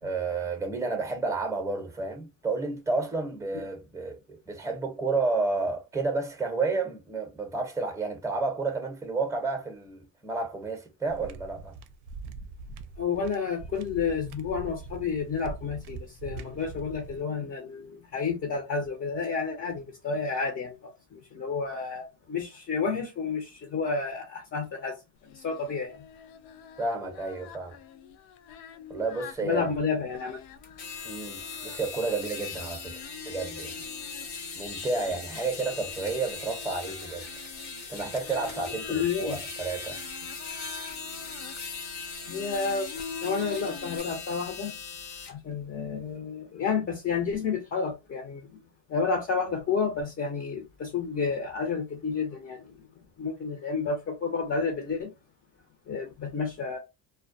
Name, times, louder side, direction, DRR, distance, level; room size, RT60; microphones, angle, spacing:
voice 1, 0.0-11.7 26.8-27.8 28.9-29.6 31.0-33.0 33.2-33.7 34.6-37.3 37.9-40.0, right 3 dB, 5° right, 0.7 m, -31 dB
sound 1, 11.1-17.2, right 4 dB, 60° right, 0.5 m, -43 dB
voice 2, 13.0-25.0 25.2-26.0 29.4-30.4 31.3-31.4 38.9-39.4 42.3-42.9 43.2-44.7 45.3-48.6 48.9-52.9 53.2-55.1 55.9-56.8, left 5 dB, 30° left, 0.7 m, -30 dB
Singing, 25.2-44.0, left 7 dB, 80° left, 0.6 m, -46 dB
sound 2, 30.6-45.3, left 4 dB, 60° left, 1.1 m, -39 dB
2.2 x 2.2 x 2.6 m
cardioid pair, 115°, 44 cm